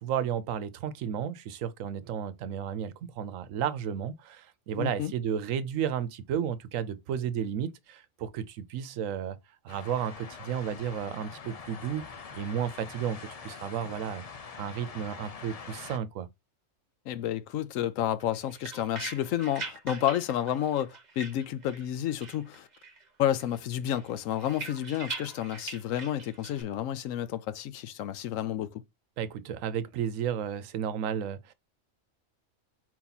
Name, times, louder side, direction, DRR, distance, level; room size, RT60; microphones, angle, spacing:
voice 1, 0.0-9.4 9.6-12.1 12.3-13.2 13.4-14.2 14.6-16.3 29.2-31.5, right 9 dB, 90° right, 1.0 m, -33 dB
voice 2, 4.8-5.1 17.1-22.7 23.2-28.8, left 11 dB, 80° left, 1.0 m, -30 dB
sound 1, 9.7-16.0, left 5 dB, 45° left, 0.5 m, -44 dB
sound 2, 18.2-21.9 22.2-23.1 23.4-26.6, right 4 dB, 35° right, 0.9 m, -42 dB
4.5 x 2.8 x 4.0 m
omnidirectional pair, 1.3 m